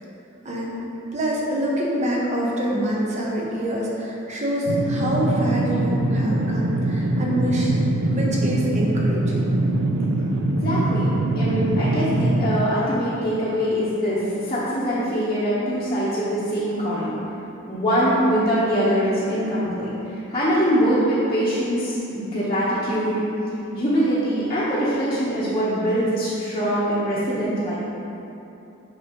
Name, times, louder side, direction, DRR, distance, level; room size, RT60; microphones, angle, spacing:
voice 1, 0.4-7.8 8.1-9.5, equal, 35° right, -4 dB, 1.0 m, -25 dB
sound 1, 4.7-12.6, right 2 dB, 60° right, 0.4 m, -23 dB
voice 2, 10.5-17.1 17.7-23.2 23.7-27.8, equal, 25° left, -12 dB, 1.0 m, -23 dB
7.0 x 5.3 x 3.0 m, 2.9 s
head